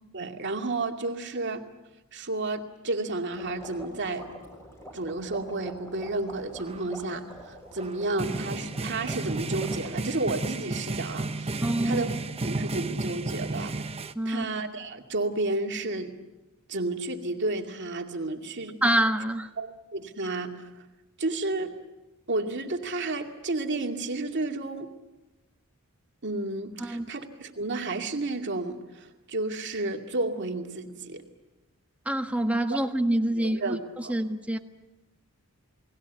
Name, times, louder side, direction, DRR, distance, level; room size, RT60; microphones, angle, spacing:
voice 1, 0.1-1.6 2.1-4.3 4.9-12.1 12.4-14.0 14.3-16.1 16.7-18.8 19.6-20.5 21.2-21.7 22.3-24.9 26.2-31.2 32.7-32.8 33.3-34.2, right 2 dB, 55° right, 2.4 m, -32 dB
sound 1, 3.3-9.9, equal, 10° left, 6.6 m, -46 dB
sound 2, 6.6-6.9 7.8-14.1, right 2 dB, 25° right, 0.9 m, -32 dB
voice 2, 11.6-12.1 14.1-14.5 18.8-19.5 26.8-27.1 32.0-33.8 34.1-34.6, right 1 dB, 5° right, 1.4 m, -26 dB
29.5 x 20.0 x 8.2 m
head